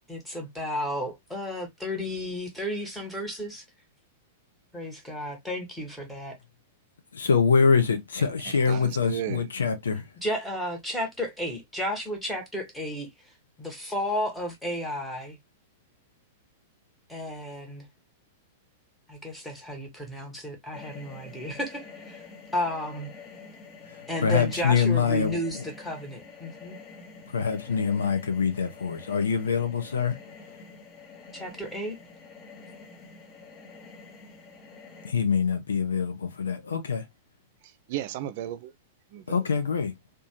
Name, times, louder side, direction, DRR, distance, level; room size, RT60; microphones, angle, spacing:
voice 1, 0.1-3.6 4.7-6.3 10.2-13.1 13.6-15.4 17.1-17.8 19.1-22.2 22.5-23.1 24.1-26.8 31.3-32.0, left 1 dB, ahead, 1.1 m, -33 dB
voice 2, 7.1-10.1 23.9-25.6 27.3-30.2 35.0-37.0 39.3-39.9, left 6 dB, 70° left, 0.6 m, -25 dB
voice 3, 8.7-9.5 37.6-38.7 39.1-39.5, right 11 dB, 45° right, 0.3 m, -35 dB
sound 1, 20.7-35.1, left 4 dB, 25° left, 0.8 m, -47 dB
2.9 x 2.2 x 2.8 m
figure-of-eight pair, 100°, 0 cm